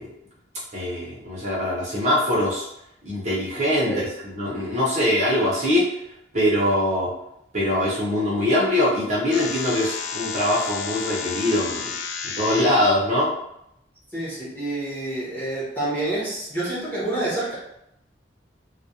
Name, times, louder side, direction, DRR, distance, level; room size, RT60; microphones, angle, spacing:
voice 1, 0.7-2.7 3.0-3.9 4.2-5.9 6.3-7.1 7.5-11.8 12.2-13.3, left 1 dB, 40° right, -7 dB, 0.6 m, -22 dB
sound 1, 9.3-12.9, left 6 dB, 80° left, 0.3 m, -31 dB
voice 2, 14.1-17.5, right 2 dB, 10° left, -10 dB, 0.9 m, -28 dB
2.3 x 2.1 x 2.7 m, 0.79 s
head